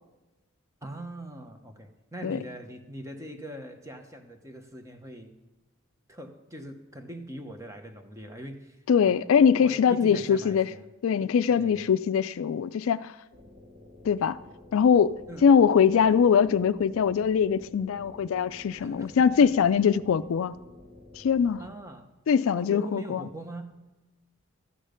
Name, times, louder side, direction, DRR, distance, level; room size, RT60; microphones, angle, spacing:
voice 1, 0.8-5.3 6.1-10.8 11.5-11.8 15.3-15.5 18.8-19.5 21.6-22.1 22.5-23.7, right 1 dB, 15° right, 0.9 m, -42 dB
voice 2, 8.9-10.7 11.0-13.1 14.0-14.4 14.7-20.5 21.1-21.6 22.3-23.2, left 7 dB, 70° left, 0.3 m, -22 dB
sound 1, 13.3-21.7, left 2 dB, 50° right, 2.7 m, -51 dB
12.5 x 8.7 x 5.1 m
head